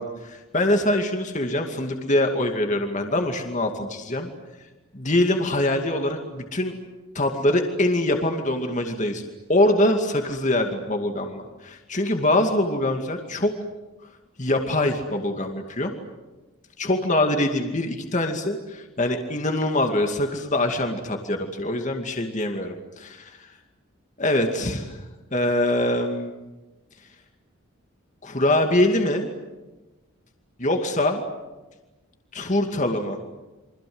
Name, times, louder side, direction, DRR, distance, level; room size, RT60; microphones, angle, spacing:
voice 1, 0.0-4.3 4.9-6.7 7.1-9.2 9.5-13.5 14.4-15.9 16.8-23.5 24.2-25.0 25.3-26.4 28.2-29.3 30.6-31.2 32.3-33.2, left 1 dB, 35° left, 4 dB, 2.4 m, -24 dB
29.0 x 25.5 x 8.0 m, 1.1 s
head